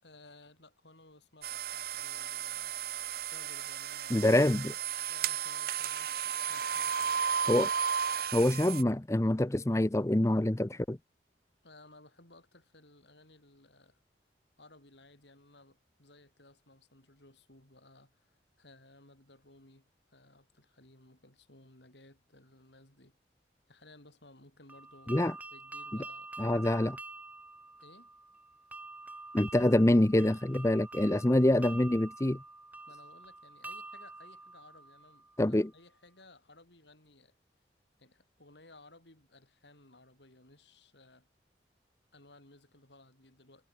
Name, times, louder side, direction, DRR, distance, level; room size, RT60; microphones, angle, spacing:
voice 1, 0.0-2.8 3.3-4.2 5.1-7.4 11.6-14.0 14.6-23.2 23.7-25.2 25.5-26.4 27.8-28.1 31.4-31.9 32.8-37.3 38.0-41.3 42.1-43.7, left 2 dB, 75° left, 6.6 m, -59 dB
sound 1, 1.4-8.8, right 8 dB, 55° right, 0.7 m, -34 dB
voice 2, 4.1-4.7 7.5-7.7 8.3-11.0 25.1-25.3 26.4-27.0 29.3-32.4 35.4-35.7, left 1 dB, 15° left, 0.6 m, -26 dB
sound 2, 24.7-35.5, right 2 dB, 10° right, 2.3 m, -47 dB
head